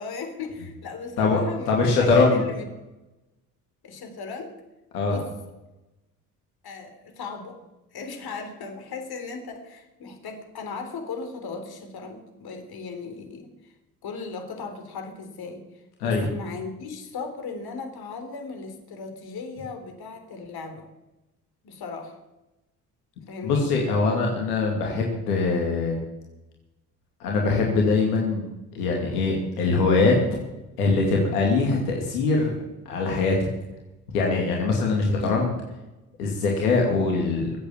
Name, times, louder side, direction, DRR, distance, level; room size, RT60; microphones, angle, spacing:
voice 1, 0.0-2.7 3.8-4.5 5.0-5.3 6.6-7.6 7.9-13.7 14.0-20.9 21.6-22.2 23.3-23.7, left 4 dB, 55° left, 6 dB, 3.8 m, -37 dB
voice 2, 1.7-2.4 4.9-5.2 16.0-16.3 23.4-26.0 27.2-28.5 28.7-30.2 30.8-32.5 32.9-33.5 34.1-35.6 36.2-37.6, left 3 dB, 85° left, -1 dB, 2.6 m, -22 dB
23.0 x 8.6 x 7.3 m, 1.0 s
hypercardioid pair, 50°, 45 cm